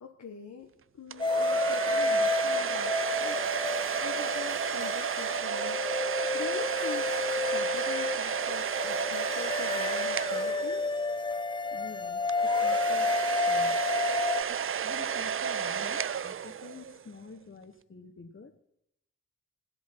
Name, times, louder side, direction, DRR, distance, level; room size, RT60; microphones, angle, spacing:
voice 1, 0.0-3.7 4.0-10.9, left 6 dB, 75° left, 1 dB, 1.2 m, -44 dB
sound 1, 1.1-11.2 12.3-17.0, right 7 dB, 45° right, 0.5 m, -32 dB
sound 2, 1.2-14.4, left 3 dB, 15° left, 0.4 m, -30 dB
voice 2, 11.7-13.8 14.5-18.6, left 4 dB, 45° left, 10 dB, 1.3 m, -48 dB
18.5 x 7.7 x 6.2 m, 0.83 s
cardioid pair, 55°, 29 cm